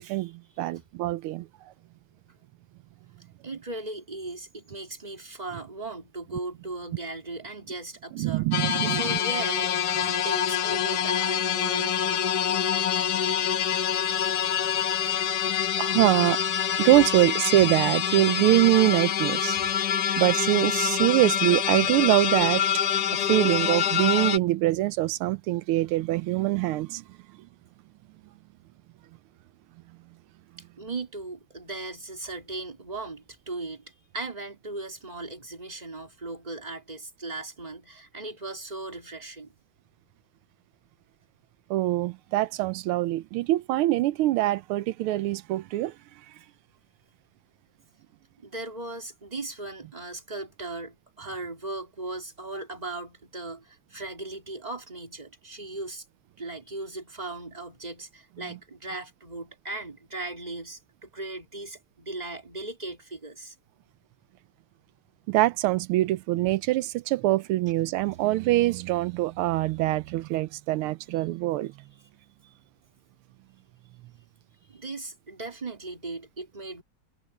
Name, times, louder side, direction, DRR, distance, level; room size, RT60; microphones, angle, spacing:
voice 1, 0.0-1.5 8.1-9.2 14.2-14.3 15.8-16.4 16.7-19.6 20.2-22.7 23.1-27.0 41.7-45.9 65.3-71.7, right 16 dB, 90° right, 1.5 m, -24 dB
voice 2, 3.4-12.2 19.5-19.8 30.8-39.5 48.4-56.0 56.4-63.5 72.4-72.5 74.7-76.8, right 2 dB, 20° right, 3.4 m, -38 dB
sound 1, 8.5-24.4, left 9 dB, 60° left, 1.2 m, -26 dB
omnidirectional pair, 2.3 m